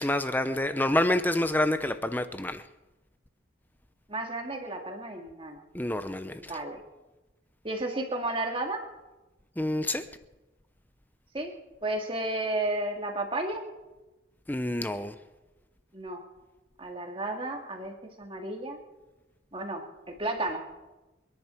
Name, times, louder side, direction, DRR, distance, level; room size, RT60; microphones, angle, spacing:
voice 1, 0.0-2.7 5.7-6.5 9.6-10.1 14.5-15.1, left 1 dB, 10° left, 0.6 m, -28 dB
voice 2, 4.1-5.6 6.4-6.8 7.6-8.8 11.3-11.5 11.8-13.6 15.9-16.2 16.8-18.8 19.5-20.7, right 2 dB, 25° right, 2.1 m, -33 dB
28.5 x 10.5 x 4.5 m
head